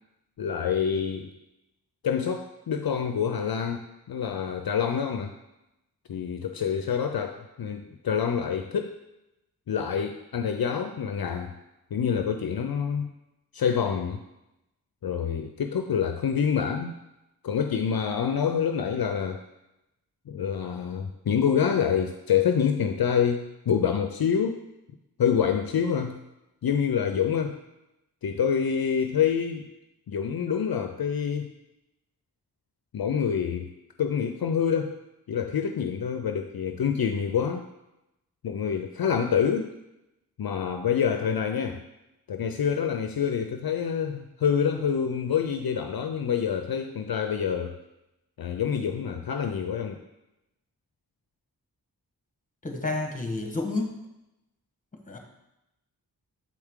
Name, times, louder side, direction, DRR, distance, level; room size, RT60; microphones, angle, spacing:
voice 1, 0.4-1.3 2.0-5.3 6.1-9.0 9.7-11.5 11.9-13.1 13.5-14.2 15.0-16.9 17.4-19.4 20.3-24.6 25.2-26.2 26.6-27.6 28.2-29.7 30.1-31.5 32.9-33.7 34.0-35.0 35.3-37.6 38.4-39.7 40.4-41.8 42.3-47.8 48.4-50.0, left 7 dB, 65° left, 6 dB, 0.5 m, -27 dB
voice 2, 52.6-54.0 55.1-55.2, left 2 dB, 20° left, 2 dB, 1.2 m, -30 dB
7.6 x 4.6 x 3.6 m, 0.92 s
wide cardioid pair, 50°, 39 cm